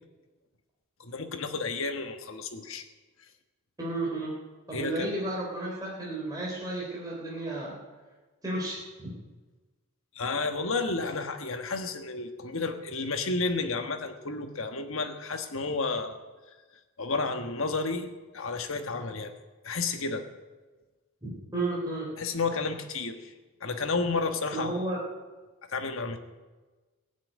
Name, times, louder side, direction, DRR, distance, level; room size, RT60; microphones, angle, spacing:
voice 1, 1.0-2.8 4.7-5.1 10.1-16.2 17.0-19.3 19.6-20.3 22.2-23.3 23.6-24.7 25.7-26.2, left 3 dB, 60° left, 6 dB, 1.5 m, -31 dB
voice 2, 3.8-4.3 4.7-7.8 8.4-9.1 21.2-22.1 24.5-25.0, right 2 dB, 15° right, -5 dB, 3.7 m, -33 dB
16.0 x 7.8 x 9.5 m, 1.3 s
head